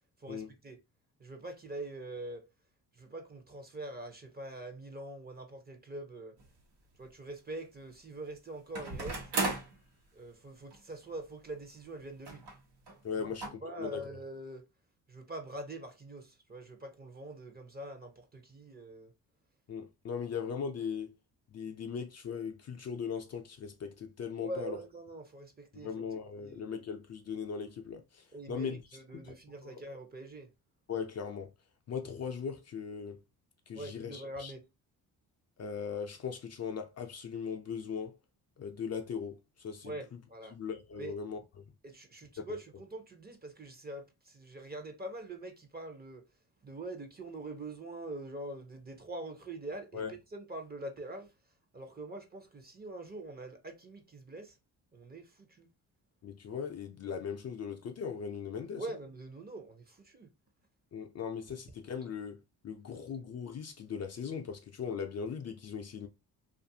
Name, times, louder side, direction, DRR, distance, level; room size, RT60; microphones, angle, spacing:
voice 1, 0.2-0.8 1.2-2.5 2.9-6.4 7.0-9.2 10.1-12.4 13.2-13.3 13.6-14.6 15.1-19.1 24.4-25.9 26.4-26.7 28.3-30.5 33.7-34.6 39.8-40.6 41.0-41.1 41.8-46.2 46.6-51.3 51.7-54.6 54.9-55.7 58.8-60.3, right 1 dB, 25° right, 0.7 m, -44 dB
sound 1, 6.4-6.5 8.8-9.8 10.7-10.8 11.0-11.1 12.3-12.6 12.9-13.0 13.4-13.5, right 3 dB, 80° right, 1.1 m, -35 dB
voice 2, 13.0-14.1 19.7-21.1 21.5-24.8 25.7-28.8 29.1-29.3 29.6-29.8 30.9-31.5 31.9-33.2 33.7-34.5 35.6-38.2 38.6-39.9 40.5-41.6 42.4-42.5 49.9-50.1 56.2-58.9 60.9-66.1, left 6 dB, 40° left, 0.5 m, -39 dB
2.5 x 2.5 x 2.6 m
cardioid pair, 80°, 40 cm